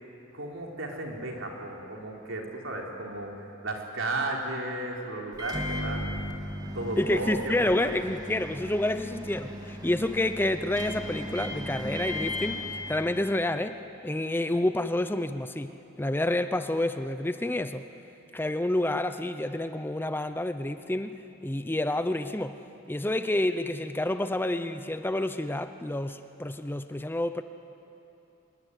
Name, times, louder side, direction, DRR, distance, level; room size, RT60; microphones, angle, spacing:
voice 1, 0.3-6.1 6.7-8.0, right 2 dB, 70° right, 0 dB, 4.0 m, -34 dB
Microwave oven, 5.3-13.5, left 1 dB, 20° right, 2.6 m, -36 dB
voice 2, 7.0-13.8 14.0-17.8 18.3-21.2 21.4-22.6 22.9-27.4, left 1 dB, 10° left, 10 dB, 0.6 m, -29 dB
25.5 x 21.5 x 9.8 m, 2.9 s
head